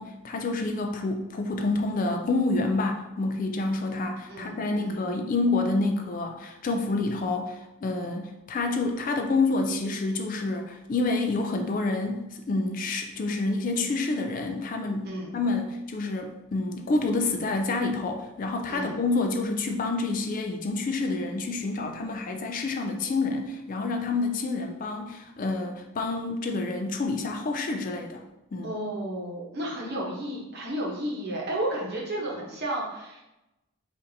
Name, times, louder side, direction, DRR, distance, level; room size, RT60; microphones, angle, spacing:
voice 1, 0.0-28.2 28.5-28.7, left 3 dB, 40° left, 4 dB, 0.3 m, -28 dB
voice 2, 4.3-5.1 15.0-15.4 18.7-18.9 28.6-33.2, right 1 dB, 45° right, -3 dB, 1.0 m, -32 dB
5.2 x 2.6 x 2.7 m, 0.96 s
head